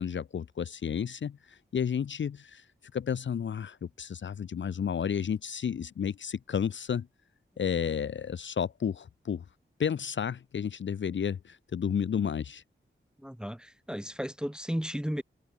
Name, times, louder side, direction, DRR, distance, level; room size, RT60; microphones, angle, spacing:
voice 1, 0.0-2.6 2.9-7.1 7.6-9.4 9.8-12.6, left 7 dB, 60° left, 0.5 m, -32 dB
voice 2, 13.2-15.2, equal, 5° right, 0.7 m, -34 dB
wide cardioid pair, 90°, 21 cm